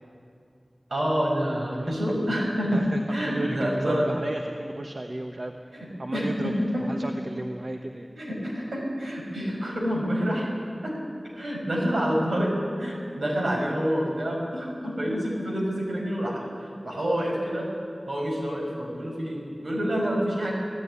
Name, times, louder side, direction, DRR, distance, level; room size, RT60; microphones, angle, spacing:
voice 1, 0.9-4.1 5.7-6.8 8.2-10.5 10.8-10.9 11.3-16.4 16.8-17.7 18.1-20.5, equal, 80° right, -2 dB, 6.4 m, -27 dB
voice 2, 3.3-5.5 6.0-6.5 6.8-8.1, right 2 dB, 60° right, 3 dB, 1.1 m, -33 dB
18.0 x 15.5 x 9.7 m, 2.4 s
wide cardioid pair, 45°, 0 cm